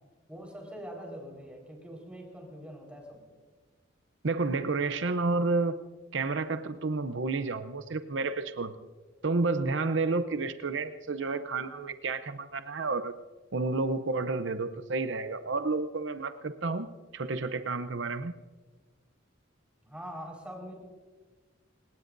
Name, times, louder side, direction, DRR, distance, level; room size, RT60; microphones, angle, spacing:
voice 1, 0.3-3.2 19.8-20.7, equal, 5° right, 0 dB, 4.5 m, -43 dB
voice 2, 4.2-5.7 6.1-8.7 9.2-13.1 13.5-16.9 17.1-18.3, right 3 dB, 70° right, 10 dB, 0.7 m, -30 dB
29.0 x 18.5 x 2.6 m, 1.4 s
head